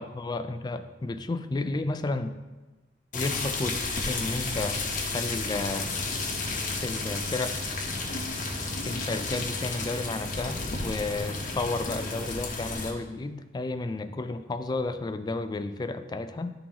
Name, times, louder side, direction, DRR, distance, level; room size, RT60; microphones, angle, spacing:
voice 1, 0.0-2.3 3.1-5.9 6.8-7.6 8.8-16.5, left 2 dB, 25° left, 10 dB, 0.3 m, -32 dB
sound 1, 3.1-12.9, left 3 dB, 50° left, 1.0 m, -32 dB
11.5 x 3.8 x 2.9 m, 1.2 s
head